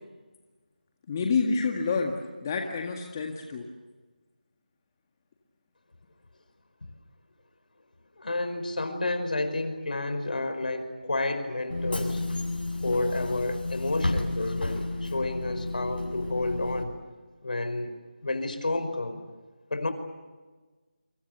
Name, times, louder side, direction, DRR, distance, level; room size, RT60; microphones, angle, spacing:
voice 1, 1.1-2.1 2.4-3.6, left 4 dB, 25° left, 2 dB, 1.9 m, -28 dB
voice 2, 8.2-12.2 12.8-16.9 17.4-17.9 18.2-19.2 19.7-19.9, left 2 dB, 65° left, 9 dB, 5.0 m, -30 dB
Bus / Engine, 11.7-16.8, left 2 dB, 80° left, 7.7 m, -31 dB
28.5 x 25.5 x 6.9 m, 1.3 s
figure-of-eight pair, 165°, 5 cm